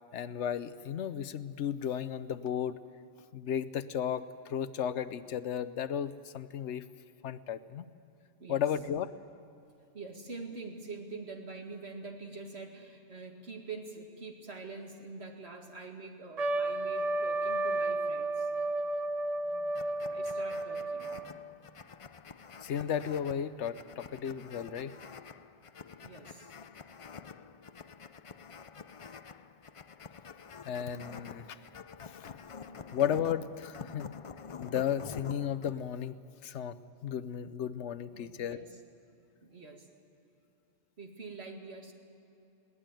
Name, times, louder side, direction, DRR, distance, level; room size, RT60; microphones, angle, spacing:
voice 1, 0.1-2.8 3.3-6.9 7.2-7.8 8.5-9.1 22.6-24.9 30.6-31.6 32.0-32.4 32.9-34.1 34.6-36.2 36.4-36.8 37.0-38.6, left 9 dB, 80° left, 14 dB, 1.0 m, -34 dB
voice 2, 9.9-18.5 20.1-21.1 26.0-26.5 38.1-38.8 39.4-39.9 41.0-41.9, right 3 dB, 65° right, 2 dB, 2.4 m, -45 dB
Trumpet, 16.4-21.4, right 2 dB, 40° right, 0.7 m, -32 dB
sound 1, 19.7-35.8, left 6 dB, 40° left, 0.5 m, -48 dB
21.0 x 18.0 x 9.0 m, 2.8 s
omnidirectional pair, 1.2 m